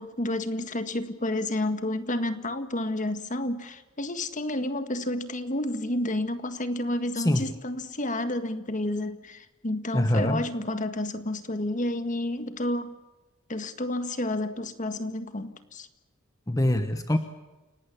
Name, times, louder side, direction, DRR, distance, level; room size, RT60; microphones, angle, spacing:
voice 1, 0.0-12.9 13.5-15.9, left 1 dB, 35° left, 10 dB, 1.8 m, -30 dB
voice 2, 9.9-10.4 16.5-17.2, left 1 dB, 15° left, 8 dB, 1.1 m, -24 dB
29.5 x 18.5 x 7.2 m, 1.1 s
head